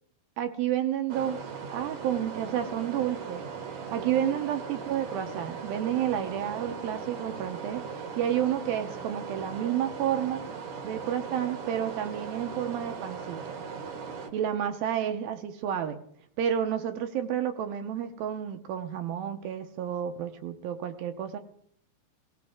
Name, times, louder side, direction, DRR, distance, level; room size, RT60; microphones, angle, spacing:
voice 1, 0.4-1.4 1.7-3.4 3.8-7.8 8.2-10.4 10.8-13.4 14.3-16.0 16.4-21.4, right 10 dB, 75° right, 7 dB, 2.6 m, -30 dB
sound 1, 1.1-14.3, right 5 dB, 55° right, 1.6 m, -39 dB
18.0 x 18.0 x 3.7 m, 0.68 s
omnidirectional pair, 4.6 m